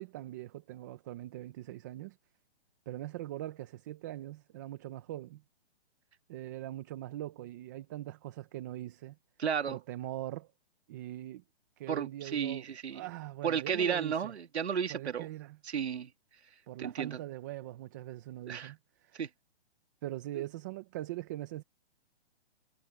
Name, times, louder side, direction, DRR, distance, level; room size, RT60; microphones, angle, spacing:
voice 1, 0.0-2.2 2.9-5.4 6.3-9.2 9.7-10.5 10.9-11.4 11.8-12.7 12.9-14.3 14.9-15.6 16.7-19.2 20.0-21.6, right 14 dB, 20° right, 0.7 m, -41 dB
voice 2, 9.4-9.8 11.9-13.0 13.4-15.3 15.6-16.1 16.8-17.2 18.5-18.7 19.1-19.3, right 7 dB, 85° right, 2.1 m, -33 dB
hypercardioid pair, 170°, 32 cm